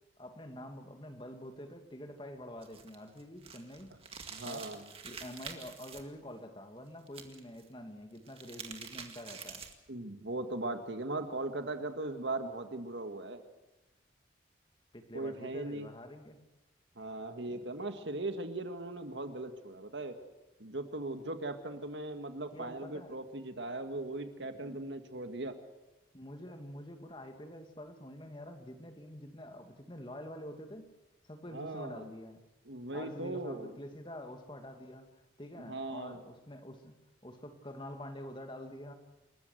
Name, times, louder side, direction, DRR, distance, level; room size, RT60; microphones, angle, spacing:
voice 1, 0.2-3.9 4.4-4.7 5.0-9.7 14.9-16.4 17.5-17.7 22.5-23.2 24.4-24.8 26.1-30.9 31.2-32.4 32.9-35.1 35.4-38.9, left 1 dB, 25° left, 5 dB, 2.2 m, -47 dB
sound 1, 2.6-6.0 7.1-7.6 8.1-9.9, right 6 dB, 30° right, 2.0 m, -47 dB
voice 2, 4.3-4.8 9.9-13.4 15.1-15.9 17.0-20.1 20.6-25.5 31.5-32.1 32.7-33.8 35.7-36.2, right 2 dB, 70° right, 7 dB, 1.9 m, -39 dB
28.0 x 14.5 x 8.0 m, 1.0 s
head